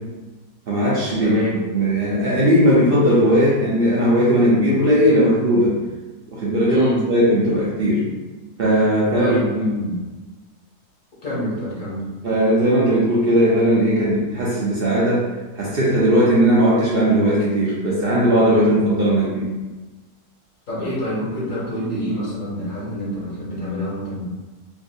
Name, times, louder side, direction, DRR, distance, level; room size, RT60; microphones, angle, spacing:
voice 1, 0.7-1.4 1.7-5.8 6.3-8.1 8.6-9.4 12.2-15.2 15.6-19.5, equal, 65° right, -7 dB, 0.5 m, -18 dB
voice 2, 1.2-1.7 6.7-7.1 9.2-10.0 11.2-12.1 20.7-24.2, equal, 40° left, -7 dB, 0.8 m, -26 dB
3.5 x 2.4 x 2.6 m, 1.2 s
omnidirectional pair, 1.7 m